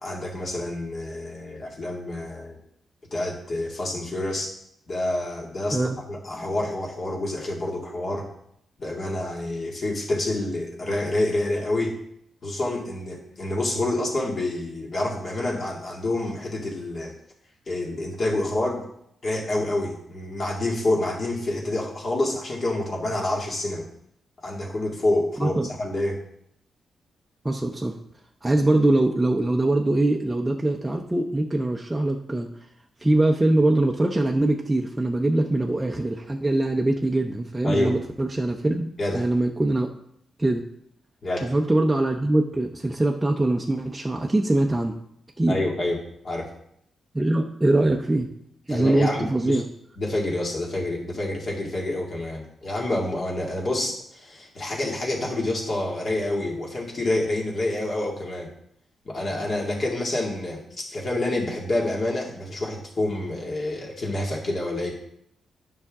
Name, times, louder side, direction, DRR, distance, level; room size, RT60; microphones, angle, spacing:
voice 1, 0.0-2.6 3.1-4.5 4.9-5.8 6.1-8.3 8.8-12.0 12.4-17.1 17.7-18.8 19.2-23.9 24.4-26.2 37.6-38.0 39.0-39.3 41.2-41.5 45.5-46.5 48.7-49.6 50.0-58.5 59.0-64.9, left 1 dB, 45° left, -2 dB, 2.2 m, -27 dB
voice 2, 27.4-28.0 28.4-32.5 33.0-38.9 39.1-39.9 40.4-40.6 41.4-45.0 45.4-45.6 47.1-48.3 48.7-49.7, right 2 dB, 15° right, 1 dB, 0.6 m, -22 dB
9.6 x 5.7 x 3.6 m, 0.72 s
cardioid pair, 110°, 0 cm